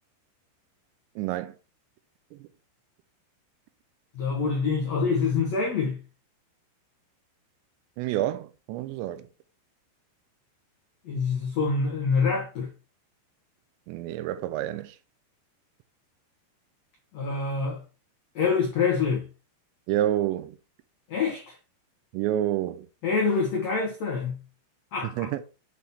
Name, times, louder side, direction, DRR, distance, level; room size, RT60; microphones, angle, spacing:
voice 1, 1.2-1.5 2.3-2.5 8.0-9.3 13.9-15.0 19.9-20.6 22.1-22.9 25.2-25.4, right 13 dB, 85° right, 2.8 m, -28 dB
voice 2, 4.1-6.0 11.0-12.7 17.1-17.8 18.3-19.2 21.1-21.5 23.0-24.4 24.9-25.3, left 5 dB, 85° left, 1.4 m, -26 dB
8.4 x 4.2 x 3.5 m
omnidirectional pair, 5.2 m